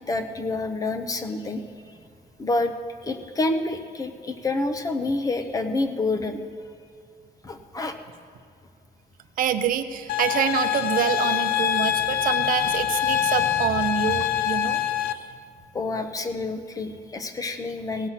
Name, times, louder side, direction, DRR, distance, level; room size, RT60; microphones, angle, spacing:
voice 1, 0.1-1.6 2.4-2.7 3.0-6.4 7.4-7.9 15.7-18.1, left 2 dB, 25° left, 7 dB, 0.6 m, -28 dB
voice 2, 9.4-14.9 15.1-15.3, right 9 dB, 70° right, 9 dB, 0.7 m, -26 dB
sound 1, 10.1-15.1, left 11 dB, 80° left, 0.5 m, -24 dB
17.5 x 7.5 x 5.7 m, 2.3 s
cardioid pair, 170°, 15 cm